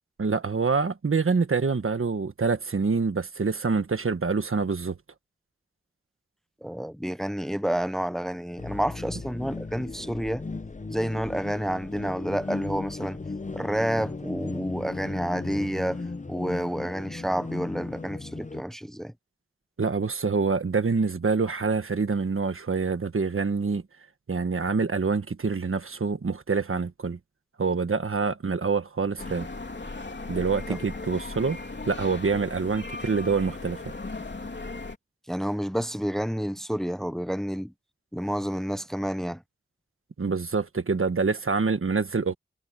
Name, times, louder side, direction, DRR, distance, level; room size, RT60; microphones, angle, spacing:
voice 1, 0.2-5.0 19.8-23.8 24.3-27.2 27.6-29.5 30.3-31.6 31.9-33.8 40.2-42.4, right 4 dB, 80° right, 1.4 m, -26 dB
voice 2, 6.6-10.4 10.9-13.2 13.5-16.0 16.3-19.1 35.3-37.7 38.1-39.4, equal, ahead, 0.7 m, -29 dB
sound 1, 8.6-18.6, left 3 dB, 35° left, 0.7 m, -36 dB
sound 2, 29.2-35.0, left 3 dB, 60° left, 3.1 m, -37 dB
wide cardioid pair, 55°, 21 cm